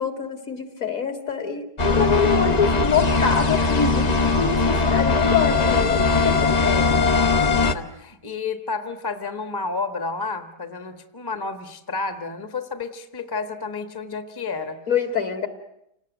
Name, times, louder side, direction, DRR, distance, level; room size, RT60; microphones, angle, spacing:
voice 1, 0.0-6.5 14.9-15.5, left 6 dB, 50° left, 7 dB, 2.6 m, -25 dB
sound 1, 1.8-7.8, left 4 dB, 30° left, 0.9 m, -20 dB
voice 2, 6.6-14.8, left 4 dB, 15° left, 8 dB, 1.3 m, -30 dB
28.5 x 18.5 x 9.2 m, 0.80 s
omnidirectional pair, 1.8 m